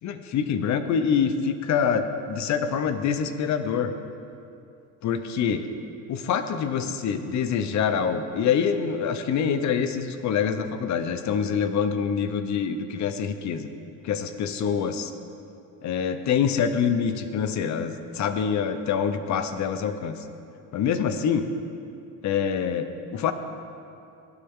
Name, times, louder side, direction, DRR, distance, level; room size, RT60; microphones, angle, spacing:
voice 1, 0.0-3.9 5.0-5.6 6.1-13.7 14.0-15.1 15.8-20.2 20.7-21.5 22.2-23.3, left 7 dB, 55° left, 9 dB, 1.0 m, -25 dB
17.5 x 11.5 x 3.8 m, 2.6 s
cardioid pair, 125°, 33 cm